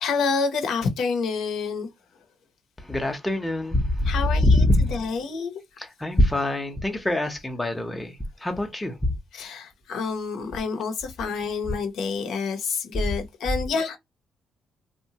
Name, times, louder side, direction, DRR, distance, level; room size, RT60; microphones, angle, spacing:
voice 1, 0.0-1.9 4.0-5.6 9.3-14.0, left 5 dB, 75° left, 0.8 m, -28 dB
voice 2, 2.9-4.8 5.8-9.1, left 1 dB, 10° left, 0.7 m, -23 dB
2.8 x 2.2 x 2.8 m
cardioid pair, 90°, 0 cm